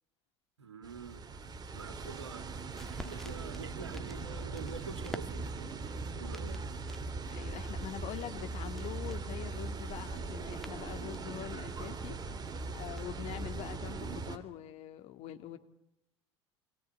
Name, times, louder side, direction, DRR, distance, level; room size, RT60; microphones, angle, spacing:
voice 1, 0.6-1.3 1.7-2.5 3.0-5.8 6.1-6.7, right 5 dB, 80° right, 7 dB, 2.4 m, -46 dB
sound 1, 0.8-14.4, right 3 dB, 30° right, 2.7 m, -40 dB
sound 2, 2.3-13.5, left 1 dB, ahead, 1.8 m, -52 dB
voice 2, 7.3-15.6, left 11 dB, 50° left, 8 dB, 2.2 m, -44 dB
26.5 x 20.5 x 9.0 m, 0.85 s
figure-of-eight pair, 70°, 14 cm